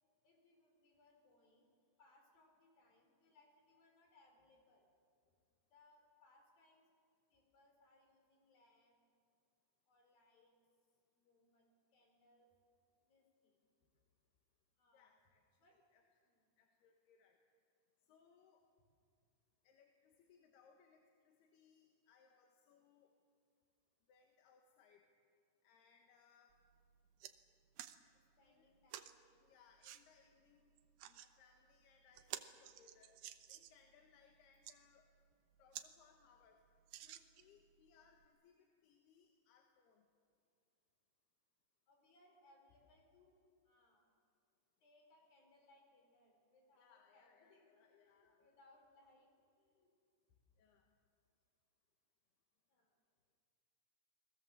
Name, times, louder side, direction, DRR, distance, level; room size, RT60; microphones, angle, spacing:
voice 1, 0.2-1.7 2.0-4.9 5.2-5.3 5.7-6.8 7.3-9.0 9.9-10.5 11.2-11.6 11.9-12.5 13.1-13.7 14.8-15.1 15.6-15.8 16.2-16.5 28.4-29.3 37.4-37.6 41.9-43.4 43.6-44.1 44.8-49.3 49.6-49.9 52.7-52.9, left 2 dB, 65° left, 2 dB, 6.3 m, -70 dB
voice 2, 14.9-15.4 15.7-16.0 16.6-17.4 18.1-18.6 19.6-23.1 24.1-25.1 25.6-26.5 28.4-28.7 29.4-30.7 31.1-33.2 33.5-35.1 35.6-36.6 37.0-40.1 46.8-48.5 50.6-50.9, left 6 dB, 80° left, 3 dB, 3.4 m, -70 dB
sound 1, 26.5-26.6 27.0-27.3 27.8-28.0 28.9-29.1 29.8-30.0 30.8-31.3 31.8-31.9 32.2-33.8 34.4-34.8 35.3-35.4 35.7-35.9 36.2-36.3 36.9-37.6 38.2-38.3, right 12 dB, 75° right, 2.7 m, -51 dB
29.5 x 21.0 x 7.4 m, 2.3 s
omnidirectional pair, 4.6 m